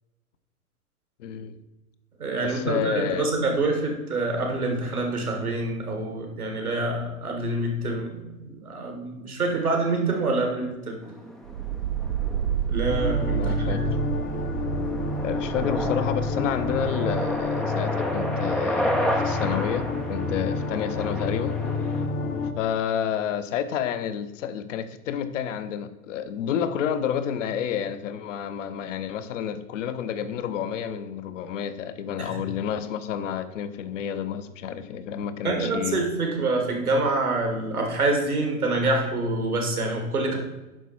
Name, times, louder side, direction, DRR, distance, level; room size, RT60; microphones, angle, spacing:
voice 1, 1.2-1.6 2.4-3.3 13.4-13.8 15.2-21.6 22.6-36.1, left 8 dB, 60° left, 11 dB, 0.9 m, -30 dB
voice 2, 2.2-11.0 12.7-13.8 32.2-32.3 35.4-40.4, right 2 dB, 85° right, 2 dB, 1.9 m, -26 dB
sound 1, 11.0-22.1, equal, ahead, 0.4 m, -32 dB
sound 2, 11.4-17.5, right 9 dB, 65° right, 0.6 m, -30 dB
sound 3, 12.9-22.5, left 4 dB, 20° left, 0.8 m, -29 dB
9.0 x 6.0 x 4.5 m, 1.1 s
figure-of-eight pair, 100°, 43 cm